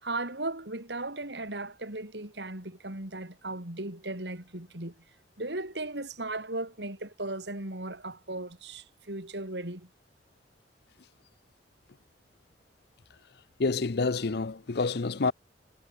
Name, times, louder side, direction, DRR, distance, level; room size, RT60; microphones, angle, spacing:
voice 1, 0.0-5.0 5.4-9.9, right 2 dB, 70° right, 4.7 m, -37 dB
voice 2, 13.6-15.3, left 4 dB, 60° left, 0.7 m, -28 dB
head